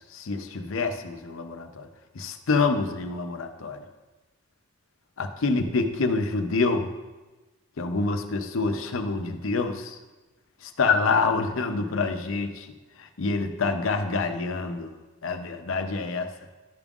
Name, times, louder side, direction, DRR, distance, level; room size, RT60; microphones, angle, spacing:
voice 1, 0.0-1.9 2.1-3.8 5.2-6.9 7.8-10.0 10.6-12.7 13.0-14.9 15.2-16.3, left 4 dB, 65° left, 6 dB, 0.6 m, -27 dB
12.0 x 5.3 x 2.4 m, 1.2 s
head